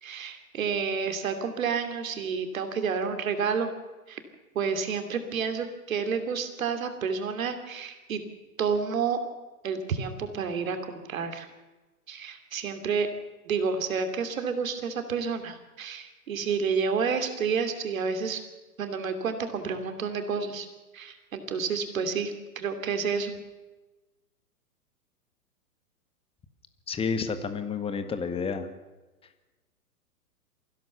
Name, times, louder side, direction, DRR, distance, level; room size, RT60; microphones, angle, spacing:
voice 1, 0.0-3.7 4.1-4.2 4.5-8.2 8.6-9.2 9.6-11.5 12.1-13.1 13.5-18.4 18.8-20.7 20.9-23.3, right 5 dB, 60° right, 8 dB, 2.8 m, -30 dB
voice 2, 26.9-28.7, left 5 dB, 10° left, 10 dB, 1.5 m, -30 dB
23.0 x 16.0 x 7.0 m, 1.2 s
figure-of-eight pair, 105°, 46 cm